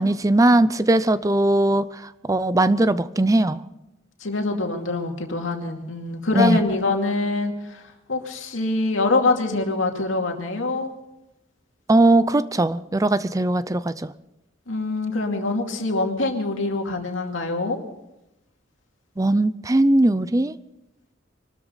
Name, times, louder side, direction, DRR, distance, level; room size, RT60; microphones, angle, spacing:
voice 1, 0.0-1.8 2.3-3.6 6.3-6.6 11.9-14.1 19.2-20.5, right 2 dB, 20° right, 15 dB, 0.5 m, -19 dB
voice 2, 4.2-7.8 8.1-10.9 14.7-17.8, left 3 dB, 90° left, 3 dB, 2.5 m, -24 dB
24.0 x 13.5 x 4.0 m, 0.90 s
head